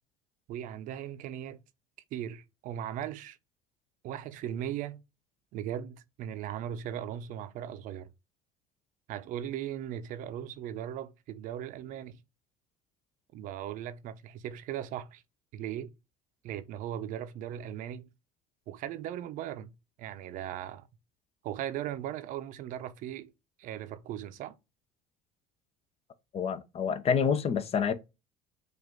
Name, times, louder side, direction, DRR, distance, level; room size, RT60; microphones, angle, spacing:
voice 1, 0.5-1.6 2.1-3.4 4.0-5.0 5.5-8.1 9.1-12.2 13.3-15.2 15.5-15.9 16.4-18.1 18.7-19.7 20.0-20.9 21.4-23.3 23.6-24.5, right 10 dB, 60° right, 0.6 m, -38 dB
voice 2, 26.3-27.9, left 6 dB, 40° left, 0.7 m, -27 dB
5.1 x 2.5 x 3.7 m
supercardioid pair, 80°, 15 cm